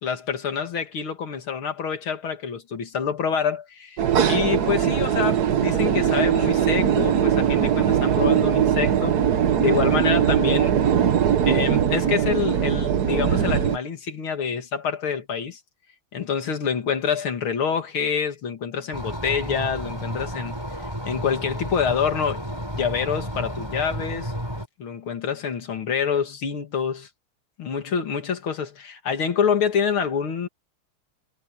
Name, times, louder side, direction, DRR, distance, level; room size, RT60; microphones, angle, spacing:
voice 1, 0.0-4.0 4.3-9.2 9.6-10.7 11.5-15.6 16.1-20.6 21.1-22.4 22.7-24.3 24.8-27.1 27.6-30.5, left 6 dB, 75° left, 2.9 m, -26 dB
sound 1, 4.0-13.8, right 9 dB, 55° right, 1.5 m, -21 dB
sound 2, 18.9-24.7, equal, 10° right, 7.6 m, -32 dB
omnidirectional pair, 2.3 m